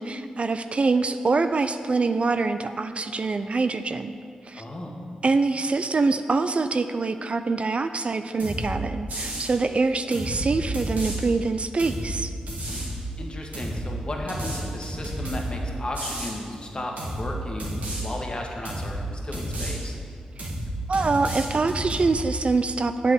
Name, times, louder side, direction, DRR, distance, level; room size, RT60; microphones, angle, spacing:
voice 1, 0.0-4.2 4.5-4.6 5.2-12.3 20.4-20.5 20.9-23.1, right 3 dB, 45° right, 9 dB, 0.4 m, -24 dB
voice 2, 4.5-4.9 13.2-19.9, left 1 dB, 35° left, 0 dB, 1.5 m, -34 dB
sound 1, 8.4-8.7 9.1-9.5 10.1-11.2 11.8-12.1 12.5-12.9 13.5-13.8 14.3-15.5 15.9-16.3 17.0-17.2 17.6-18.0 18.6-18.9 19.3-19.7 20.4-20.7 20.9-22.1, right 1 dB, 75° right, 2.2 m, -31 dB
7.9 x 5.3 x 6.5 m, 2.4 s
cardioid pair, 55°, 3 cm